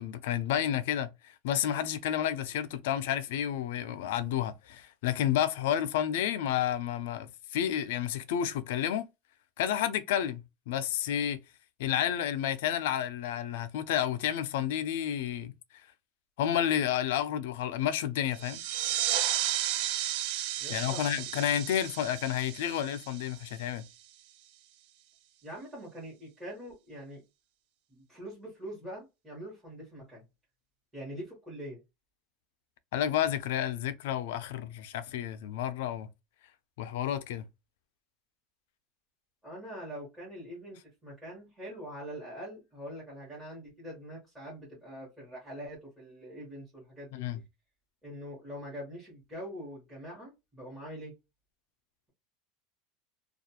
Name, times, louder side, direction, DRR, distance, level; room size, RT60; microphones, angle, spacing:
voice 1, 0.0-9.1 9.6-11.4 11.8-15.5 16.4-18.6 20.7-23.9 32.9-36.1 36.8-37.5 47.1-47.4, left 10 dB, 85° left, 0.3 m, -30 dB
sound 1, 18.3-23.7, right 12 dB, 60° right, 0.3 m, -33 dB
voice 2, 20.6-21.2 25.4-27.2 27.9-30.2 30.9-31.8 39.4-47.2 48.0-51.1, equal, 10° right, 1.1 m, -44 dB
2.4 x 2.3 x 2.8 m
supercardioid pair, 170°, 0 cm